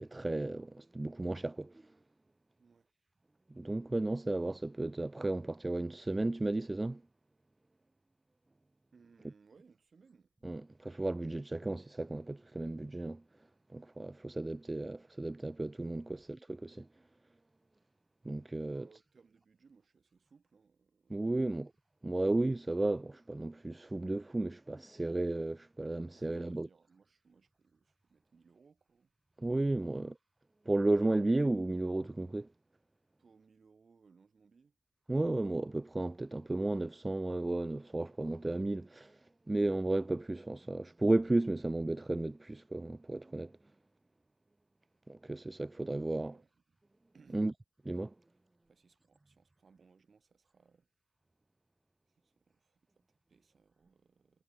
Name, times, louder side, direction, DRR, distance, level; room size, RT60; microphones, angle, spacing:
voice 1, 0.0-1.7 3.6-7.0 10.4-13.2 13.7-16.1 16.6-16.9 18.2-18.8 21.1-21.7 22.0-26.7 29.4-30.1 30.7-32.5 35.1-39.2 39.5-43.5 45.1-46.3 47.3-47.5 47.9-48.1, right 2 dB, 30° right, 0.3 m, -33 dB
voice 2, 8.9-10.3 16.1-16.3 18.6-21.7 26.1-29.1 33.2-34.7 45.7-46.8 47.1-47.5 48.7-50.9 52.1-54.4, right 5 dB, 70° right, 5.6 m, -65 dB
wide cardioid pair, 70°, 0 cm